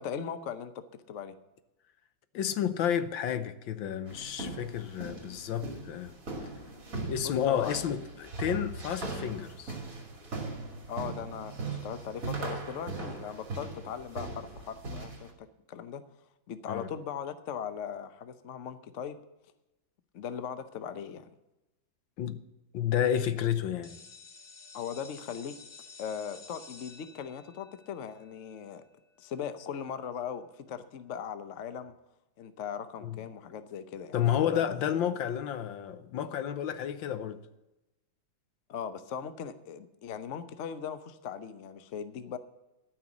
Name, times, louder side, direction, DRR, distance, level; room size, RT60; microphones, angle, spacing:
voice 1, 0.0-1.3 7.2-7.8 10.9-16.0 16.5-19.2 20.1-21.3 24.7-25.6 26.0-28.8 29.2-31.9 32.4-34.8 38.7-42.4, left 7 dB, 55° left, 0.9 m, -39 dB
voice 2, 2.3-6.1 7.1-9.8 16.7-16.9 22.2-22.4 22.7-24.0 33.0-33.2 34.1-37.4, left 9 dB, 75° left, 1.5 m, -31 dB
sound 1, 4.1-15.3, right 3 dB, 45° right, 2.8 m, -39 dB
sound 2, 23.8-29.5, left 4 dB, 30° left, 0.8 m, -52 dB
13.5 x 6.0 x 8.4 m
omnidirectional pair, 2.1 m